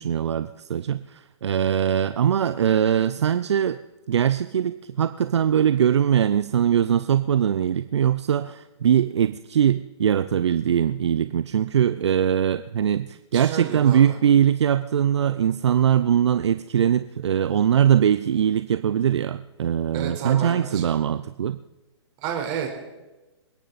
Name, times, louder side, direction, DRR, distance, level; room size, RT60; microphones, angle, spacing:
voice 1, 0.0-3.8 4.1-21.6, right 9 dB, 70° right, 12 dB, 0.7 m, -21 dB
voice 2, 13.3-14.2 19.9-20.9 22.2-22.7, right 8 dB, 30° right, 1 dB, 4.3 m, -31 dB
27.5 x 10.0 x 4.2 m, 1.1 s
hypercardioid pair, 135°, 15 cm